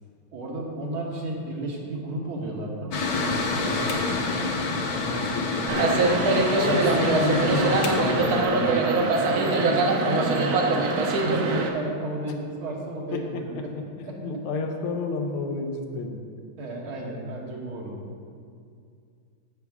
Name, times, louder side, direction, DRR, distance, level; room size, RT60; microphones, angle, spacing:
voice 1, 0.3-3.7 9.3-10.9 11.2-13.7 16.6-18.1, right 1 dB, 75° right, -1 dB, 2.3 m, -32 dB
Mechanical fan, 2.9-8.4, left 3 dB, 60° left, 1.2 m, -28 dB
voice 2, 3.6-4.6 4.9-5.9 6.4-8.9 13.1-16.2, left 3 dB, 85° left, 3 dB, 1.8 m, -31 dB
sound 1, 5.7-11.7, right 3 dB, 60° right, 1.1 m, -23 dB
15.5 x 5.9 x 3.6 m, 2.3 s
omnidirectional pair, 2.3 m